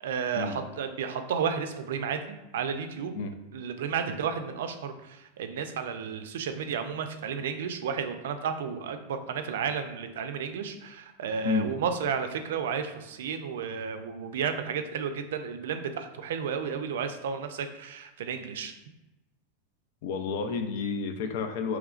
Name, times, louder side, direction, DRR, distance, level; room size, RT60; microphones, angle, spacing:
voice 1, 0.0-3.1 3.5-18.7, right 6 dB, 80° right, 8 dB, 0.4 m, -32 dB
voice 2, 20.0-21.8, left 5 dB, 50° left, 6 dB, 0.4 m, -30 dB
4.9 x 3.1 x 2.4 m, 0.99 s
supercardioid pair, 175°, 0 cm